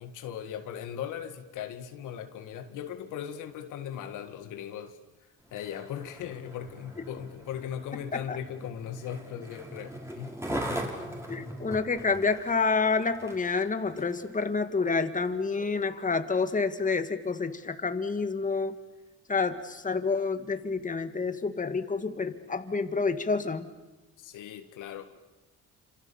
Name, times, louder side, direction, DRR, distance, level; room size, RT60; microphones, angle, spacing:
voice 1, 0.0-5.0 5.5-10.3 24.2-25.2, left 9 dB, 90° left, 2.0 m, -38 dB
Skateboard, 5.4-14.3 14.9-15.0, right 1 dB, 10° right, 4.9 m, -40 dB
voice 2, 11.3-18.7 19.3-23.7, left 4 dB, 25° left, 1.9 m, -28 dB
28.5 x 26.5 x 7.1 m
cardioid pair, 90°, 30 cm